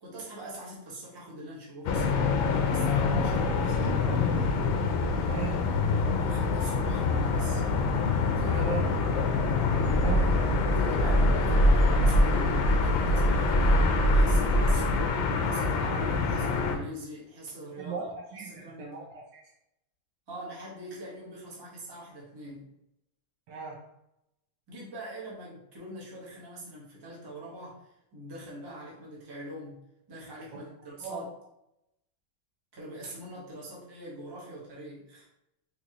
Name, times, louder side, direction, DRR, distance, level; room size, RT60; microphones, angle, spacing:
voice 1, 0.0-4.5 6.1-7.6 8.4-8.7 10.7-15.1 15.4-19.0 20.3-22.7 24.7-29.8 30.1-31.3 32.7-35.3, right 1 dB, 25° right, -5 dB, 0.5 m, -43 dB
sound 1, 1.9-16.8, left 4 dB, 75° left, 1.3 m, -27 dB
voice 2, 5.3-5.7 8.5-8.9 10.0-10.4 17.8-18.1 18.3-19.4 23.5-23.8 30.5-30.7 31.0-31.3, right 5 dB, 70° right, -1 dB, 1.1 m, -37 dB
sound 2, 9.8-15.0, equal, 20° left, 0.5 m, -24 dB
3.9 x 2.8 x 2.8 m, 0.83 s
omnidirectional pair, 2.3 m